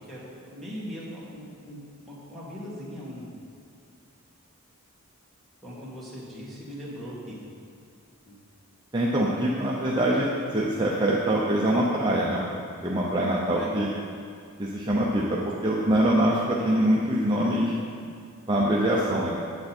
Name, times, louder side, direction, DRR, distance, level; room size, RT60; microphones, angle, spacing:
voice 1, 0.1-3.3 5.6-7.4 8.3-8.4 13.5-13.7 16.6-16.7, equal, ahead, -8 dB, 2.2 m, -40 dB
voice 2, 8.9-12.4 12.8-13.9 14.6-17.7 18.5-19.3, right 1 dB, 20° right, -5 dB, 0.8 m, -24 dB
9.4 x 7.7 x 4.4 m, 2.4 s
head